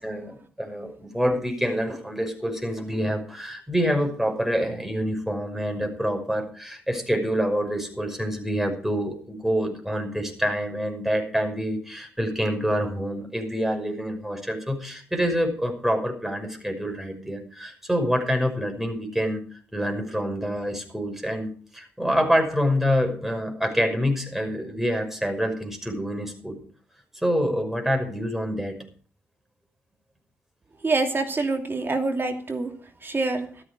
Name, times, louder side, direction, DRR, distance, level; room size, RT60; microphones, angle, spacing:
voice 1, 0.0-19.4 19.7-26.6 27.2-28.8, equal, 5° right, 4 dB, 5.8 m, -26 dB
voice 2, 30.8-32.7 33.0-33.5, right 3 dB, 35° right, 5 dB, 2.7 m, -25 dB
13.5 x 13.0 x 5.0 m, 0.43 s
hypercardioid pair, 40°, 6 cm